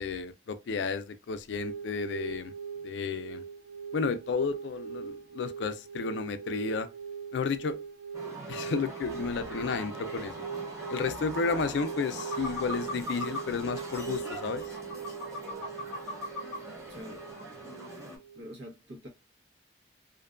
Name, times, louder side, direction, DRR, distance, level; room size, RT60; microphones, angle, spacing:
voice 1, 0.0-2.5 2.8-3.4 3.9-6.9 7.3-7.8 8.5-10.3 10.9-14.8, left 5 dB, 75° left, 0.3 m, -32 dB
sound 1, 1.5-18.4, right 6 dB, 65° right, 0.4 m, -41 dB
sound 2, 8.1-18.2, right 2 dB, 15° right, 0.6 m, -42 dB
sound 3, 11.8-11.9 12.2-13.4 13.9-14.0 14.5-16.6 17.0-17.1 17.4-17.5, left 2 dB, 50° right, 1.3 m, -37 dB
voice 2, 16.9-17.2 18.3-19.1, equal, 85° right, 1.0 m, -44 dB
2.5 x 2.2 x 2.4 m
head